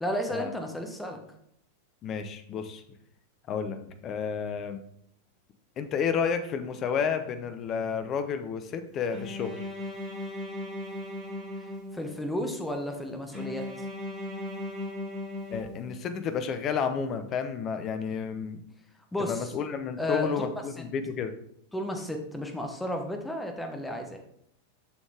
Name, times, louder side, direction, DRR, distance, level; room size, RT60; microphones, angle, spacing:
voice 1, 0.0-1.2 11.9-13.7 19.1-19.5 20.0-20.4 20.8-20.9 21.7-24.2, left 1 dB, 5° left, 4 dB, 1.1 m, -32 dB
voice 2, 2.0-2.8 3.5-3.8 4.0-4.8 5.8-9.7 15.5-18.6 19.2-21.3, left 6 dB, 30° left, 9 dB, 0.7 m, -31 dB
Bowed string instrument, 9.1-12.3 13.3-16.2, left 1 dB, 10° right, 3.1 m, -37 dB
7.1 x 6.2 x 3.4 m, 0.72 s
figure-of-eight pair, 90°, 0 cm